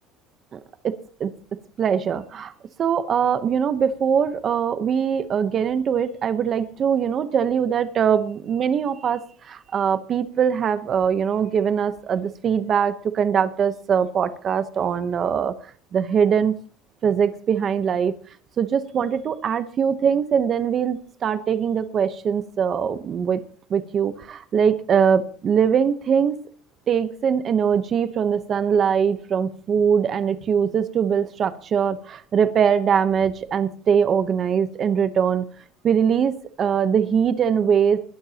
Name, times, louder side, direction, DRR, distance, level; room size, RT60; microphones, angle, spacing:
voice 1, 0.8-1.3 1.8-2.5 2.8-9.2 9.5-15.5 15.9-16.5 17.0-18.1 18.6-23.4 23.7-26.4 26.9-35.5 35.8-38.0, right 7 dB, 30° right, 12 dB, 0.9 m, -22 dB
20.0 x 12.0 x 2.9 m, 0.43 s
cardioid pair, 170°, 0 cm